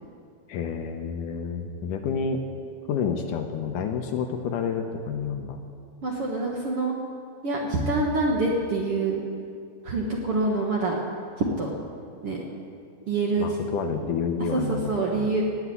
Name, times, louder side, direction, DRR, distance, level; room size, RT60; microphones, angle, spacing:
voice 1, 0.5-2.5 2.9-5.6 13.4-15.3, left 6 dB, 70° left, 5 dB, 2.1 m, -29 dB
voice 2, 6.0-6.9 7.4-9.2 9.8-10.9 11.4-11.7 12.2-12.4 13.1-13.5 14.5-15.4, right 3 dB, 55° right, -2 dB, 1.7 m, -26 dB
18.0 x 7.5 x 9.6 m, 2.3 s
omnidirectional pair, 4.4 m